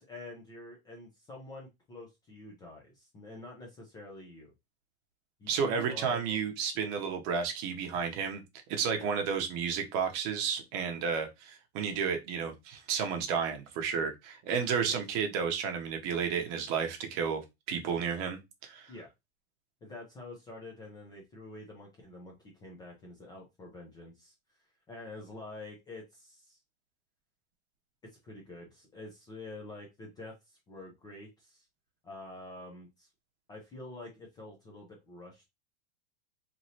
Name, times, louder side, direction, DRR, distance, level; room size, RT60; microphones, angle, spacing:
voice 1, 0.0-4.5 5.4-6.4 6.7-6.9 8.9-9.1 14.9-15.0 18.9-19.1 19.8-24.3 24.9-26.6 28.1-31.7 32.0-33.1 33.5-35.5, left 2 dB, 10° left, 0.4 m, -47 dB
voice 2, 5.5-8.4 8.7-17.4 17.7-18.9, right 6 dB, 40° right, 0.8 m, -32 dB
3.1 x 2.6 x 2.7 m
supercardioid pair, 150°, 34 cm